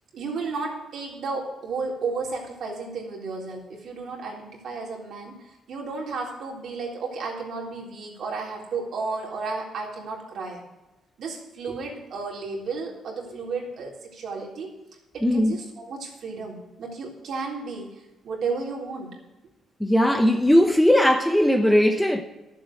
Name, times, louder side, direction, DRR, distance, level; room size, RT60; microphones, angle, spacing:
voice 1, 0.1-10.6 11.2-14.7 15.1-19.1, right 4 dB, 65° right, 3.7 m, -33 dB
voice 2, 15.2-15.6 19.8-22.2, equal, 5° left, 1.0 m, -19 dB
12.0 x 7.4 x 7.8 m
cardioid pair, 90°, 0 cm